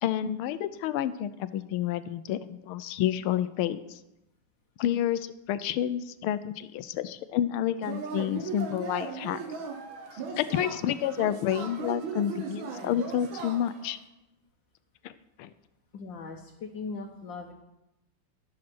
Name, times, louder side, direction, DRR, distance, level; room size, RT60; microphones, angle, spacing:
voice 1, 0.0-4.0 4.8-9.4 10.1-14.0 15.0-15.1 15.4-15.5, left 11 dB, 80° left, 14 dB, 1.5 m, -29 dB
Yell / Cheering, 7.8-13.9, right 5 dB, 65° right, 1.9 m, -37 dB
voice 2, 15.9-17.5, left 4 dB, 65° left, 1 dB, 1.6 m, -39 dB
14.5 x 6.5 x 6.0 m, 0.92 s
omnidirectional pair, 2.4 m